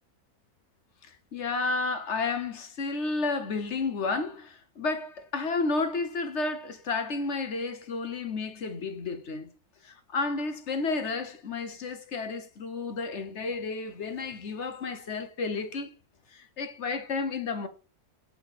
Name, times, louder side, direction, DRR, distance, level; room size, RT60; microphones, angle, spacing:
voice 1, 1.0-9.5 9.8-15.9 16.3-17.7, left 3 dB, 55° left, 1.2 m, -31 dB
8.5 x 5.0 x 5.0 m
omnidirectional pair, 1.5 m